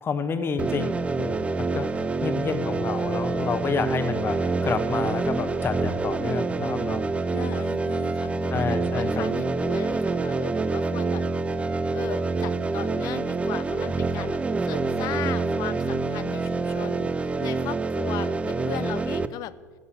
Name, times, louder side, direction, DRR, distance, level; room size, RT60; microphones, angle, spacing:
voice 1, 0.0-7.0 8.5-9.2, left 5 dB, 25° left, 11 dB, 1.1 m, -29 dB
sound 1, 0.6-19.3, right 3 dB, 15° right, 0.5 m, -26 dB
voice 2, 7.3-11.2 11.9-19.5, left 14 dB, 45° left, 18 dB, 0.5 m, -37 dB
13.0 x 8.4 x 6.8 m, 1.5 s
figure-of-eight pair, 70°, 9 cm